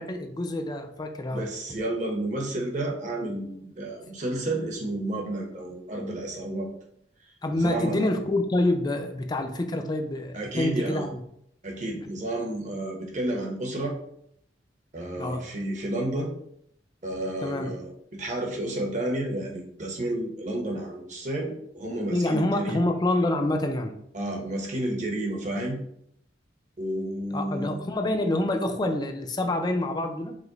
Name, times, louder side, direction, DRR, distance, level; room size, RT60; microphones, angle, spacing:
voice 1, 0.0-1.4 7.4-11.2 15.2-15.4 17.4-17.7 22.1-23.9 27.3-30.4, left 1 dB, 20° left, 5 dB, 0.4 m, -27 dB
voice 2, 1.3-6.7 7.5-8.1 10.3-11.1 11.6-14.0 14.9-16.3 17.0-22.8 24.1-25.8 26.8-27.9, right 1 dB, 40° right, 0 dB, 0.9 m, -31 dB
4.9 x 2.1 x 3.9 m, 0.71 s
head